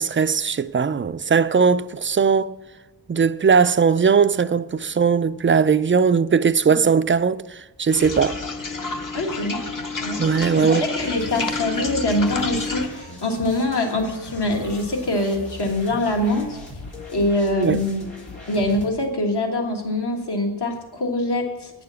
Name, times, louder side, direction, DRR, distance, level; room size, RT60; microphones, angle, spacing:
voice 1, 0.0-2.5 3.1-8.4 10.2-10.9 17.6-17.8, right 6 dB, 30° right, 0.4 m, -19 dB
sound 1, 7.9-12.9, left 3 dB, 45° left, 1.0 m, -29 dB
voice 2, 9.1-9.6 10.0-10.2 10.6-16.6 17.1-18.0 18.5-21.7, left 1 dB, 60° left, 1.6 m, -24 dB
sound 2, 11.0-18.9, left 2 dB, 90° left, 2.4 m, -39 dB
9.2 x 6.8 x 6.9 m
wide cardioid pair, 50°, 45 cm